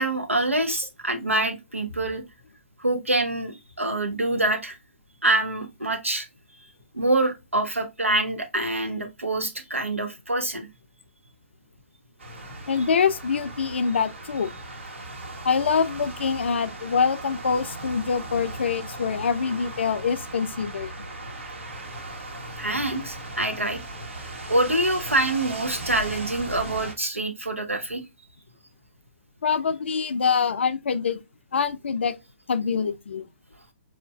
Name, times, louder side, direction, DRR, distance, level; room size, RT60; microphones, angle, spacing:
voice 1, 0.0-2.2 2.8-4.8 5.2-6.3 6.9-10.7 22.6-23.8 24.5-28.0, right 2 dB, 90° right, 0.8 m, -25 dB
sound 1, 12.2-26.9, right 2 dB, 70° right, 1.2 m, -38 dB
voice 2, 12.7-14.5 15.4-20.9 29.4-31.2 31.5-32.1 32.5-33.3, left 6 dB, 60° left, 0.4 m, -25 dB
4.3 x 2.5 x 2.2 m
figure-of-eight pair, 130°, 7 cm